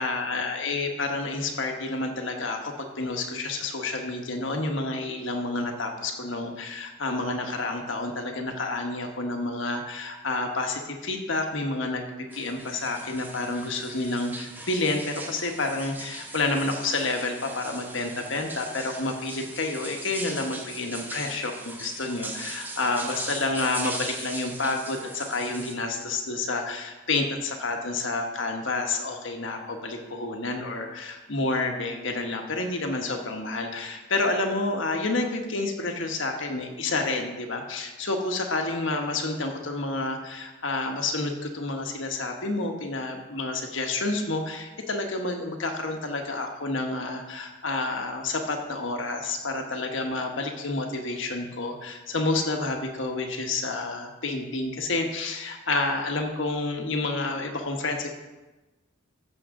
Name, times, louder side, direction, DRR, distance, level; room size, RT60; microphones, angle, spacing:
voice 1, 0.0-12.0 12.3-58.2, left 2 dB, 70° left, 3 dB, 1.3 m, -29 dB
sound 1, 12.3-25.7, right 2 dB, 10° right, 0.7 m, -40 dB
14.5 x 6.5 x 3.8 m, 1.1 s
head